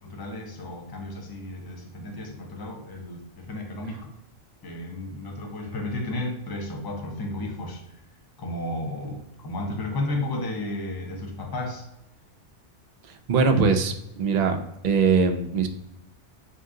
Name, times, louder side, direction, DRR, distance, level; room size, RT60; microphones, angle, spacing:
voice 1, 0.0-4.1 4.6-8.0 8.4-11.9, left 1 dB, 25° left, 2 dB, 0.5 m, -33 dB
voice 2, 13.3-14.6 14.8-15.7, right 5 dB, 65° right, 7 dB, 0.4 m, -21 dB
3.7 x 2.9 x 3.7 m, 0.87 s
omnidirectional pair, 1.2 m